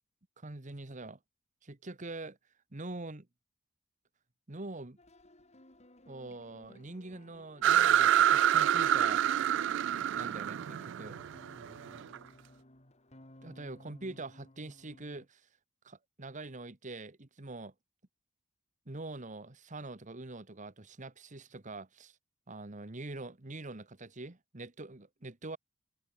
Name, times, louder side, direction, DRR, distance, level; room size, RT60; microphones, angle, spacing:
voice 1, 0.4-1.2 1.6-2.4 2.7-3.3 4.5-5.0 6.1-9.2 10.1-11.2 13.4-15.4 15.8-17.7 18.9-22.2 22.5-25.6, right 2 dB, 40° right, 1.4 m, -44 dB
sound 1, 5.0-15.3, left 1 dB, 35° left, 4.3 m, -58 dB
sound 2, 7.6-12.2, right 11 dB, 60° right, 0.3 m, -27 dB
open air
head